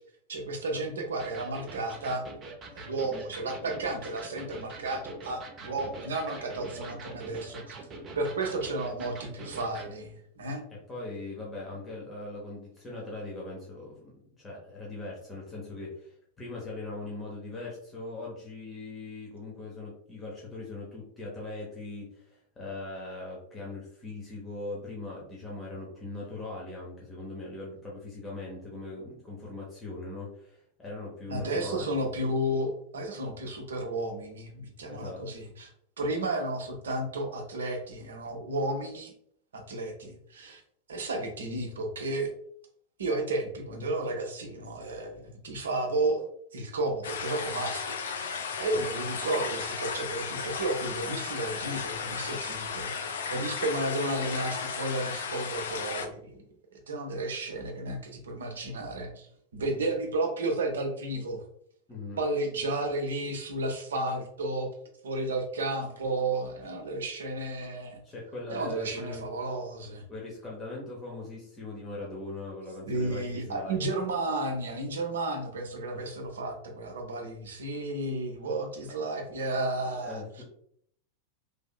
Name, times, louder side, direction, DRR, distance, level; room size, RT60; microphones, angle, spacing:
voice 1, 0.3-2.2 2.8-7.8 8.1-10.6 31.3-35.7 36.0-39.1 39.5-40.6 40.9-42.3 43.0-56.4 56.9-61.4 62.2-64.7 65.0-68.0 68.5-70.0 72.9-80.4, right 2 dB, 65° right, 3 dB, 0.6 m, -32 dB
Electric guitar, 1.2-9.9, right 3 dB, 25° right, 0.6 m, -44 dB
voice 2, 10.9-14.1 14.4-31.9 34.8-35.2 48.7-48.8 61.9-62.2 68.0-69.2 70.1-73.8 75.9-76.1 80.0-80.4, left 2 dB, 15° left, -4 dB, 0.8 m, -40 dB
sound 1, 47.0-56.1, left 6 dB, 65° left, 0.4 m, -35 dB
3.2 x 2.6 x 2.2 m, 0.66 s
figure-of-eight pair, 90°, 0 cm